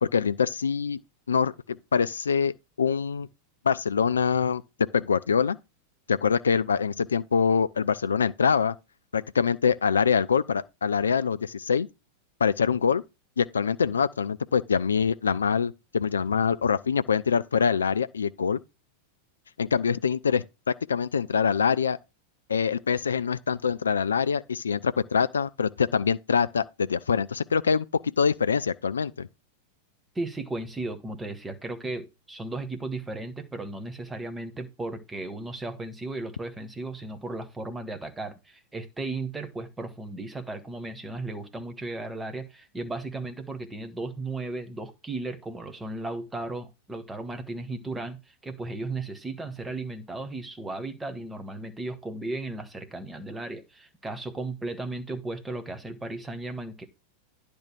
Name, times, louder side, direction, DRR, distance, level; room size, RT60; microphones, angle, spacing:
voice 1, 0.0-1.0 1.3-3.3 3.6-4.6 4.9-5.6 6.1-8.7 9.1-11.9 12.4-13.0 13.4-18.6 19.6-22.0 22.5-29.3, left 6 dB, 70° left, 0.4 m, -24 dB
voice 2, 30.1-56.8, right 2 dB, 10° right, 1.4 m, -35 dB
10.5 x 3.4 x 6.2 m
figure-of-eight pair, 90°, 0 cm